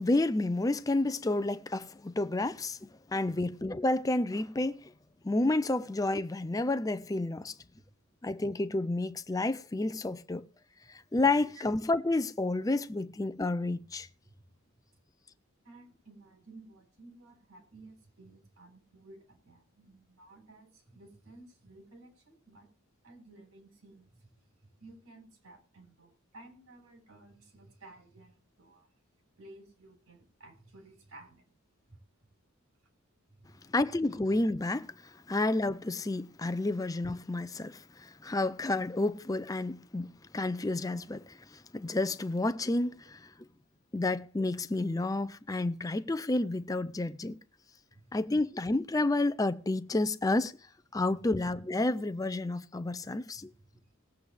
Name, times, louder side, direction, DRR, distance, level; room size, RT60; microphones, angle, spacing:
voice 1, 0.0-4.9 5.2-7.5 8.2-10.5 10.9-14.1 33.7-43.3 43.9-47.4 48.1-50.5 50.9-53.5, left 2 dB, 15° left, 0.4 m, -30 dB
voice 2, 15.6-22.7 23.0-24.3 24.8-28.9 29.4-31.5 31.9-32.0 33.4-33.6 47.9-48.1 53.4-53.5, right 2 dB, 75° right, 3.9 m, -55 dB
19.0 x 8.3 x 3.3 m
head